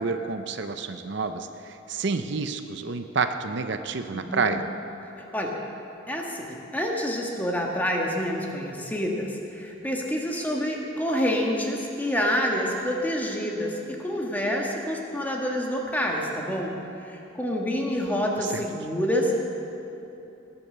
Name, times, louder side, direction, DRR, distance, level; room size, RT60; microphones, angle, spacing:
voice 1, 0.0-4.6 18.5-18.6, right 4 dB, 60° right, 8 dB, 0.6 m, -29 dB
voice 2, 4.1-4.6 5.3-5.5 6.1-16.8 17.0-19.3, equal, 10° left, -1 dB, 1.5 m, -27 dB
19.0 x 8.6 x 6.7 m, 3.0 s
head